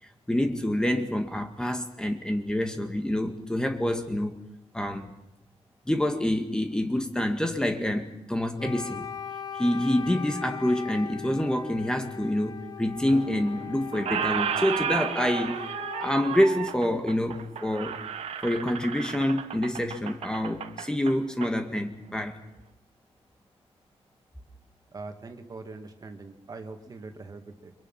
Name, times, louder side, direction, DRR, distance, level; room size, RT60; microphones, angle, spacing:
voice 1, 0.3-4.4 4.7-5.1 5.9-9.1 9.5-18.0 18.4-22.4, left 1 dB, 5° left, 5 dB, 1.8 m, -27 dB
Wind instrument woodwind instrument, 8.6-16.6, left 7 dB, 40° left, 1.3 m, -40 dB
Squeak, 13.1-13.6 13.9-21.5, right 8 dB, 70° right, 1.6 m, -33 dB
voice 2, 24.9-27.7, right 3 dB, 35° right, 6 dB, 2.4 m, -42 dB
30.0 x 25.0 x 5.8 m, 0.87 s
wide cardioid pair, 150°, 11 cm